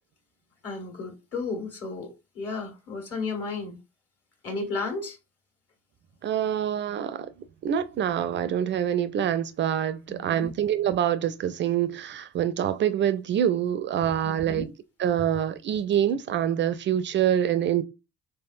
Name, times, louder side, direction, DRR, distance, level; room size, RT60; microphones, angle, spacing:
voice 1, 0.6-3.8 4.4-5.2 10.1-10.5 14.2-14.7, left 3 dB, 45° left, 1.6 m, -33 dB
voice 2, 6.2-7.3 7.6-14.7 15.0-17.8, right 10 dB, 35° right, 0.4 m, -25 dB
4.2 x 3.5 x 2.5 m
figure-of-eight pair, 45°, 34 cm